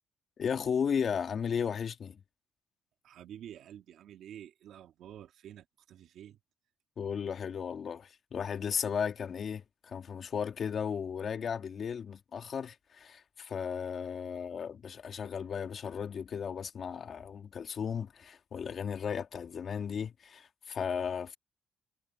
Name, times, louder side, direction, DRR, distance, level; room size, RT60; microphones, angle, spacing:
voice 1, 0.4-2.2 7.0-21.4, left 7 dB, 55° left, 2.2 m, -35 dB
voice 2, 3.0-6.4, right 10 dB, 80° right, 1.9 m, -49 dB
cardioid pair, 90°, 0 cm